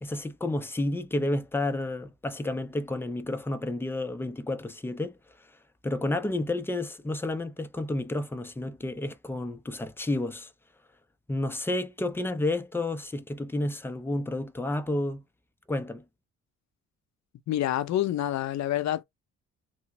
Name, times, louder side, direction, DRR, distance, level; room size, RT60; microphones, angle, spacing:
voice 1, 0.0-5.2 5.8-10.5 11.3-15.2 15.7-16.0, left 2 dB, 10° left, 0.4 m, -31 dB
voice 2, 17.5-19.0, left 12 dB, 65° left, 0.6 m, -27 dB
3.3 x 2.1 x 2.9 m
cardioid pair, 90°, 30 cm